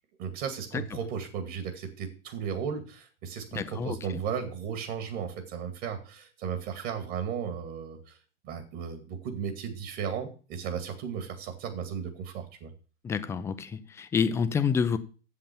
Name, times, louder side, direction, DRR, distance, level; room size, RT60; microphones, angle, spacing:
voice 1, 0.2-8.2 8.4-12.7, right 7 dB, 40° right, 2.3 m, -35 dB
voice 2, 3.5-4.2 13.0-15.0, left 6 dB, 10° left, 0.4 m, -28 dB
8.0 x 7.3 x 7.0 m
hypercardioid pair, 120°, 35 cm